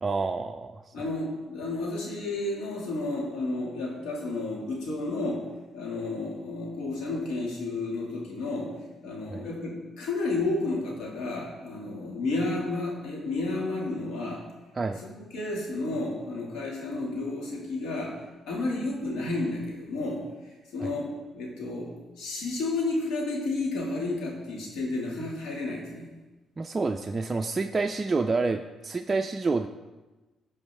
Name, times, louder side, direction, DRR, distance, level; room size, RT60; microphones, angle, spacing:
voice 1, 0.0-0.9 9.3-9.4 14.7-15.0 20.8-20.9 26.6-29.7, right 3 dB, 25° right, 5 dB, 0.4 m, -28 dB
voice 2, 0.9-5.4 5.7-8.7 9.0-14.4 15.0-18.2 18.5-20.2 20.7-21.1 21.3-26.1, left 2 dB, 90° left, -2 dB, 2.1 m, -31 dB
14.0 x 4.7 x 3.5 m, 1.2 s
cardioid pair, 90°, 0 cm